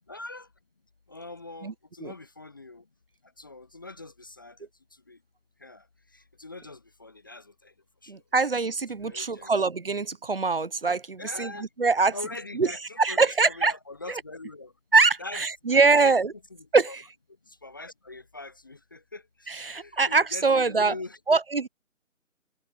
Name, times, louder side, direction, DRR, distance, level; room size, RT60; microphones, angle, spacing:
voice 1, 0.1-0.5 1.1-2.8 3.4-4.6 5.1-5.2 5.6-5.8 6.1-7.7 8.0-8.2 9.0-9.5 11.2-11.7 12.1-14.7 15.2-15.4 15.7-16.2 16.9-17.0 17.5-21.2, left 2 dB, 15° left, 0.9 m, -42 dB
voice 2, 8.1-11.5 11.8-12.1 12.5-12.7 13.0-13.7 14.9-16.3 16.7-16.9 19.5-20.9 21.3-21.7, right 4 dB, 45° right, 1.1 m, -23 dB
figure-of-eight pair, 150°, 41 cm